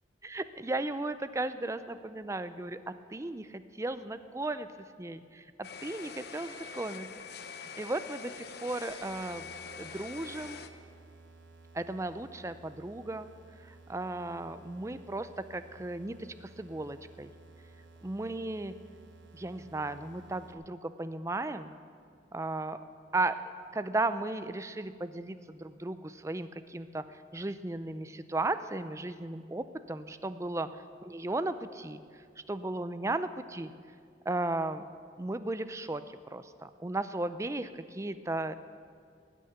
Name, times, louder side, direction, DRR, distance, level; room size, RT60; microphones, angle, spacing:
voice 1, 0.2-4.7 5.0-7.1 7.6-9.5 9.8-10.6 11.7-13.3 13.9-17.3 18.0-18.7 19.3-21.8 22.3-22.8 23.1-23.4 23.7-27.0 27.3-30.7 31.0-32.0 32.5-33.7 34.3-34.9 35.2-38.5, right 2 dB, 15° right, 11 dB, 0.5 m, -35 dB
sound 1, 5.6-10.7, left 5 dB, 60° left, 0.8 m, -44 dB
sound 2, 9.1-20.5, right 3 dB, 85° right, 1.6 m, -55 dB
19.0 x 6.5 x 9.3 m, 2.2 s
head